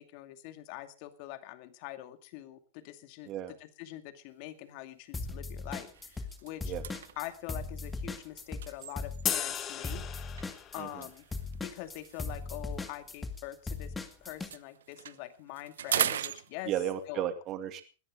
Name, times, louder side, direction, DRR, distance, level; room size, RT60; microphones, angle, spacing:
voice 1, 0.0-6.7 7.2-10.0 10.7-11.3 11.6-13.9 14.2-16.7 17.1-17.2, left 15 dB, 55° left, 10 dB, 2.2 m, -44 dB
sound 1, 4.4-4.6 5.1-5.2 5.6-9.5 10.4-13.9 14.2-17.1, right 10 dB, 85° right, 0.9 m, -39 dB
sound 2, 5.1-6.4 6.6-14.5, left 3 dB, 10° left, 2.1 m, -38 dB
sound 3, 9.3-10.9, left 10 dB, 30° left, 1.9 m, -35 dB
voice 2, 16.7-17.8, right 11 dB, 40° right, 9 dB, 2.3 m, -34 dB
20.5 x 14.5 x 3.7 m, 0.35 s
hypercardioid pair, 125°, 0 cm